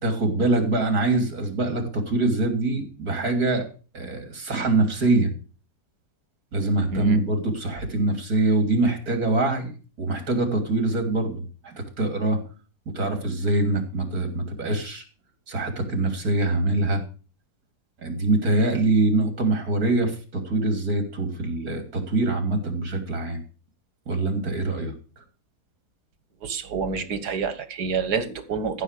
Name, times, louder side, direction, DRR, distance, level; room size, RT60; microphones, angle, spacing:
voice 1, 0.0-3.7 3.9-5.3 6.5-9.7 10.0-12.4 12.9-15.0 15.5-17.0 18.0-23.4 24.1-24.9, right 2 dB, 65° right, 3.5 m, -24 dB
voice 2, 26.4-28.8, right 5 dB, 85° right, 2.1 m, -28 dB
14.5 x 6.8 x 6.7 m
omnidirectional pair, 1.7 m